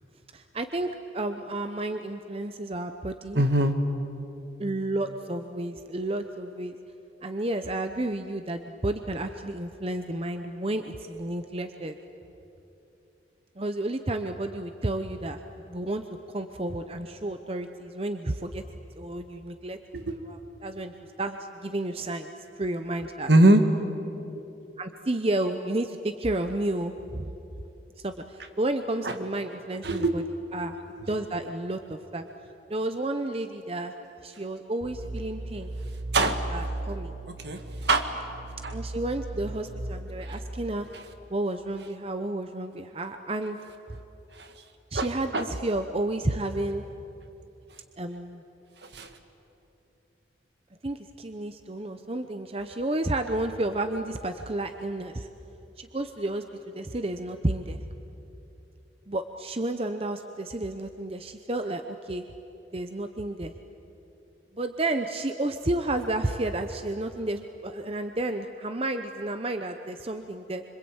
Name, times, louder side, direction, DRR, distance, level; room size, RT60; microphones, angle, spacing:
voice 1, 0.3-3.4 4.6-6.8 7.2-12.0 13.6-15.4 15.7-16.0 16.3-18.6 19.0-19.8 20.3-23.3 24.8-27.2 28.0-30.2 30.5-30.8 31.1-32.3 32.7-33.9 34.2-35.7 36.5-37.1 38.7-40.9 41.3-43.6 44.9-46.8 48.0-48.4 50.8-55.3 55.8-56.4 56.7-57.8 59.1-62.3 62.7-63.5 64.5-70.6, right 1 dB, 30° right, 7 dB, 0.8 m, -31 dB
voice 2, 3.4-3.7 19.9-20.2 23.3-23.6 29.0-29.1 29.8-30.1 36.1-36.4 37.4-38.1 38.6-38.7 40.2-40.4 44.3-44.5 44.9-45.1 45.3-45.4 48.8-49.1, right 1 dB, 65° right, 6 dB, 2.0 m, -22 dB
sound 1, 34.8-40.4, right 2 dB, 80° right, 4.4 m, -36 dB
26.0 x 26.0 x 8.8 m, 2.9 s
head